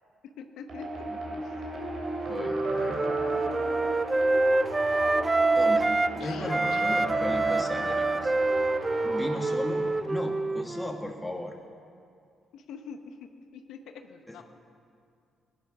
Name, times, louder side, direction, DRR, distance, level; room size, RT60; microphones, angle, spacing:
voice 1, 0.2-1.1 1.4-1.5 4.1-4.3 6.2-6.8 12.5-14.4, left 6 dB, 80° left, 6 dB, 0.8 m, -44 dB
sound 1, 0.7-10.0, right 1 dB, 60° right, 2.9 m, -35 dB
Wind instrument woodwind instrument, 1.8-6.2 6.5-11.0, right 2 dB, 20° right, 0.3 m, -27 dB
voice 2, 2.3-3.2 5.5-8.3 9.0-11.6 14.3-14.4, left 1 dB, 10° left, 2 dB, 1.6 m, -36 dB
16.5 x 10.5 x 6.1 m, 2.4 s
cardioid pair, 90°, 0 cm